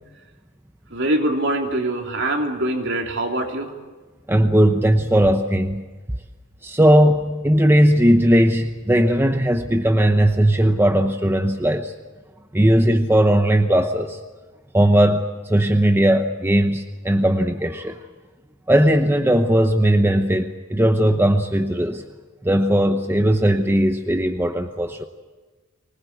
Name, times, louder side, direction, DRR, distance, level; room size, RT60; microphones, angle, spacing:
voice 1, 0.9-3.7, right 1 dB, 55° right, 2 dB, 3.3 m, -23 dB
voice 2, 4.3-5.8 6.6-11.9 12.5-14.2 14.7-18.0 18.7-22.0 22.4-25.0, right 1 dB, 10° right, 6 dB, 0.9 m, -18 dB
25.0 x 20.0 x 8.5 m, 1.3 s
head